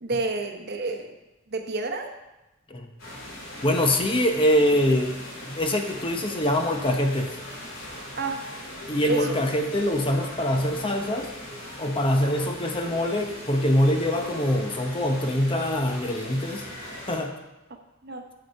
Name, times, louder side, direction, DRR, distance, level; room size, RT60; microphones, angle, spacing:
voice 1, 0.0-1.2 1.5-2.1 8.2-8.5 9.1-9.4 18.0-18.2, right 3 dB, 55° right, 5 dB, 0.9 m, -29 dB
sound 1, 3.0-17.2, left 1 dB, 90° left, 2.9 m, -40 dB
voice 2, 3.6-5.1 5.5-7.3 8.9-11.3 11.8-16.6 17.1-17.3, left 1 dB, 25° left, 4 dB, 0.8 m, -24 dB
7.8 x 6.9 x 5.3 m, 1.0 s
head